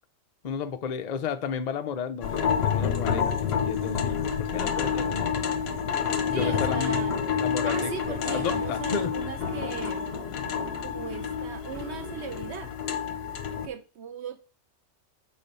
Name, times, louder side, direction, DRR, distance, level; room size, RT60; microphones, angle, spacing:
voice 1, 0.4-5.3 6.3-7.1 7.4-9.1, left 7 dB, 75° left, 0.3 m, -32 dB
sound 1, 2.2-13.7, left 7 dB, 60° left, 0.8 m, -29 dB
sound 2, 2.5-13.2, equal, 25° right, 0.3 m, -46 dB
voice 2, 6.3-7.2 7.6-10.1 10.8-12.7 13.6-14.4, right 7 dB, 60° right, 0.9 m, -37 dB
sound 3, 8.0-10.3, right 4 dB, 85° right, 1.8 m, -51 dB
5.8 x 4.0 x 5.3 m
omnidirectional pair, 1.4 m